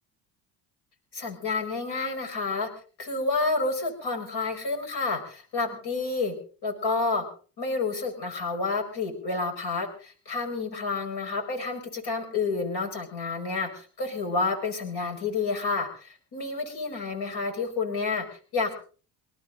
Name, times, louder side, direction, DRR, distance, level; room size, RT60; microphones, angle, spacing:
voice 1, 1.1-2.7 3.0-6.3 6.6-7.2 7.6-18.7, left 3 dB, 50° left, 2 dB, 5.2 m, -29 dB
27.5 x 12.5 x 3.9 m, 0.40 s
hypercardioid pair, 60°, 49 cm